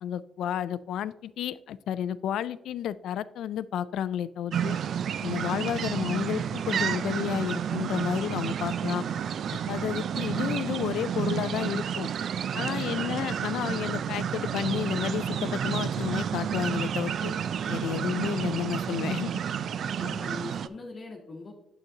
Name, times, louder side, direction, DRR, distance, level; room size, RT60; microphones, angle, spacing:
voice 1, 0.0-4.8 5.2-9.0 9.7-12.1 12.5-17.3 17.7-19.4, left 10 dB, 80° left, 16 dB, 0.3 m, -31 dB
sound 1, 4.5-20.7, right 8 dB, 60° right, 0.3 m, -30 dB
voice 2, 12.5-13.1 20.0-21.6, left 3 dB, 40° left, -1 dB, 1.1 m, -42 dB
8.9 x 7.6 x 2.8 m, 0.82 s
cardioid pair, 90°, 0 cm